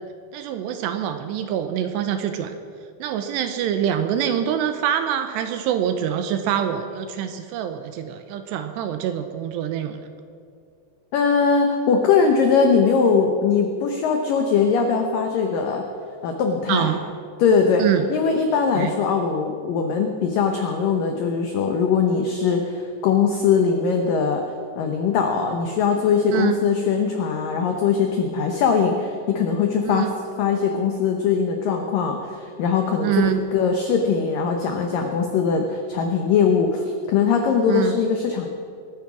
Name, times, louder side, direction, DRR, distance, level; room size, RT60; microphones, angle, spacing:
voice 1, 0.3-2.5 3.0-10.0 16.7-17.0 17.8-18.1 18.8-18.9 26.3-26.6 29.8-30.1 33.0-33.4 37.7-37.9, right 9 dB, 80° right, 8 dB, 2.7 m, -25 dB
voice 2, 11.1-15.8 16.2-16.9 17.4-17.8 18.1-24.4 24.8-30.1 30.4-38.5, left 6 dB, 85° left, 4 dB, 1.9 m, -21 dB
22.0 x 9.5 x 6.1 m, 2.4 s
omnidirectional pair, 5.4 m